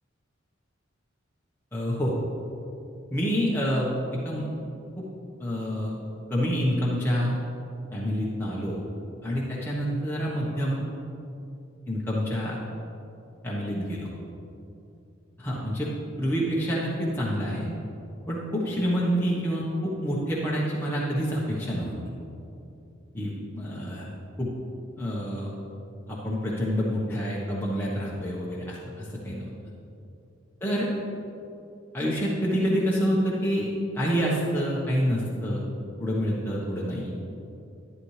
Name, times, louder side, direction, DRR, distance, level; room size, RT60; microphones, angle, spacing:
voice 1, 1.7-2.1 3.1-4.5 5.0-5.1 5.4-6.0 6.3-7.3 7.9-8.8 9.2-10.8 11.9-12.6 13.4-14.1 15.4-15.9 16.2-17.7 18.3-21.9 23.1-24.1 24.4-24.5 25.0-25.5 26.1-29.5 30.6-30.9 31.9-35.6 36.0-37.2, equal, 10° left, -6 dB, 1.1 m, -27 dB
11.5 x 10.5 x 3.3 m, 2.8 s
head